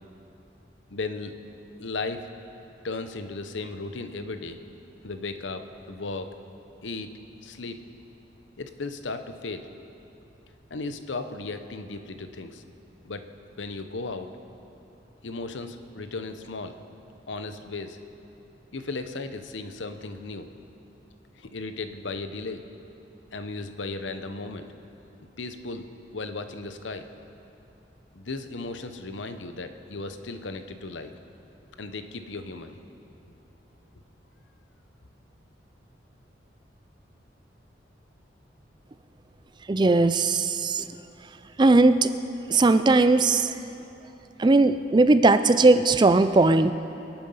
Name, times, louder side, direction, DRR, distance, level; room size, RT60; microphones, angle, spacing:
voice 1, 0.9-1.3 1.8-2.3 2.8-4.6 5.0-6.3 6.8-7.1 7.4-7.8 8.6-9.7 10.7-12.6 13.0-13.2 13.6-14.3 15.2-16.7 17.3-18.0 18.7-20.5 21.4-22.6 23.3-24.7 25.4-25.8 26.1-27.1 28.1-31.1 31.8-32.8 33.2-33.3, left 3 dB, 85° left, 9 dB, 0.9 m, -35 dB
voice 2, 39.7-40.9 41.6-42.1 42.5-43.6 44.4-46.7, right 3 dB, 25° right, 12 dB, 0.4 m, -19 dB
24.5 x 9.0 x 5.6 m, 2.9 s
head